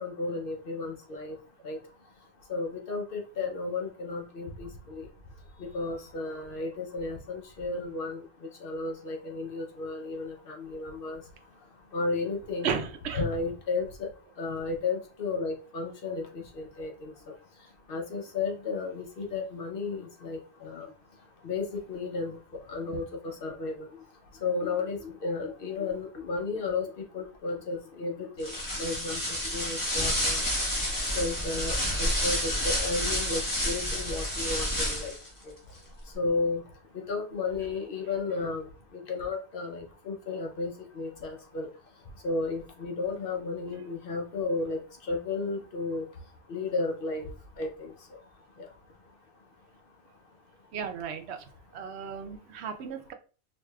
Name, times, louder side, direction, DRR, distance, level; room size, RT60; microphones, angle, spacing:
voice 1, 0.0-1.3 1.6-1.8 2.5-5.1 5.6-8.2 8.6-11.2 11.9-12.8 13.1-14.1 14.4-17.1 17.9-20.9 21.4-22.4 22.7-23.9 24.4-26.9 27.1-29.2 29.5-30.4 31.2-35.2 36.2-36.6 37.1-38.7 39.1-41.7 42.2-44.8 45.1-46.0 46.5-47.3 47.6-47.9, left 3 dB, 60° left, 2 dB, 0.8 m, -33 dB
voice 2, 12.6-13.2 50.7-51.4 51.7-53.1, right 7 dB, 80° right, 7 dB, 0.8 m, -34 dB
sound 1, 28.4-35.3, equal, 20° left, 1.1 m, -29 dB
4.6 x 2.6 x 2.3 m, 0.37 s
omnidirectional pair, 1.1 m